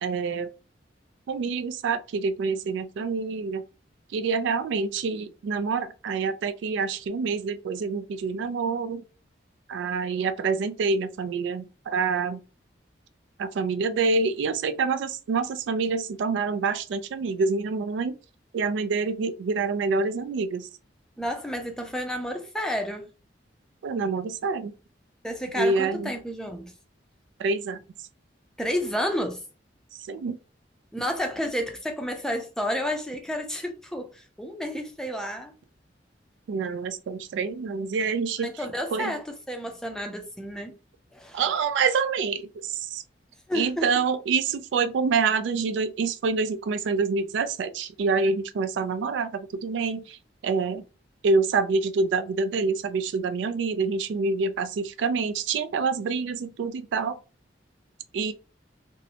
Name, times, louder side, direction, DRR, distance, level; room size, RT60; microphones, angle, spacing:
voice 1, 0.0-0.5 1.3-3.6 4.1-9.0 9.7-12.4 13.4-18.1 18.5-20.7 23.8-24.7 25.5-26.1 27.4-27.8 29.9-30.4 36.5-38.5 38.9-39.1 41.3-43.0 43.5-50.2 50.4-50.8 51.2-57.2 58.1-58.3, right 4 dB, 75° right, 0.3 m, -26 dB
voice 2, 21.2-23.1 25.2-26.7 28.6-29.4 30.9-35.5 38.4-40.8 41.1-41.4 43.5-43.9, equal, 5° left, 0.4 m, -31 dB
2.6 x 2.1 x 2.7 m
head